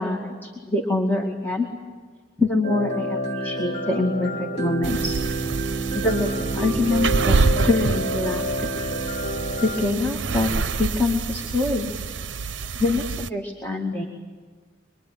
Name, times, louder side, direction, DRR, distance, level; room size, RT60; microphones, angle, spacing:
voice 1, 0.0-1.7 2.4-5.2 5.9-7.4 7.6-8.7 9.6-10.5 10.8-11.9 12.8-14.0, left 2 dB, 10° left, -1 dB, 2.2 m, -25 dB
sound 1, 2.6-9.9, right 1 dB, 35° left, 2.9 m, -28 dB
sound 2, 4.8-13.3, right 4 dB, 70° right, 0.7 m, -27 dB
24.5 x 23.0 x 9.3 m, 1.5 s
head